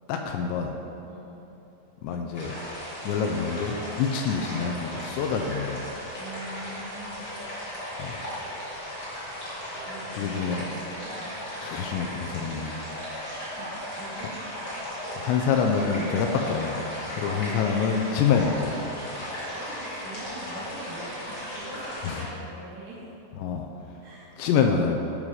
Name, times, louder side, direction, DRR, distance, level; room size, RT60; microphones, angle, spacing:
voice 1, 0.1-0.8 2.0-2.5 3.0-5.8 8.0-8.2 10.1-10.6 11.6-12.7 15.2-16.8 17.1-18.8 22.0-22.3 23.4-23.7 24.4-25.0, left 6 dB, 85° left, 3 dB, 2.6 m, -26 dB
voice 2, 1.1-1.5 6.1-7.5 9.8-11.3 13.6-14.5 15.1-15.4 16.2-16.6 17.1-17.6 19.5-23.0 24.0-24.4, right 1 dB, 80° right, -8 dB, 4.6 m, -43 dB
sound 1, 2.3-22.2, equal, 50° left, 1.0 m, -36 dB
12.5 x 5.6 x 4.8 m, 3.0 s
omnidirectional pair, 5.6 m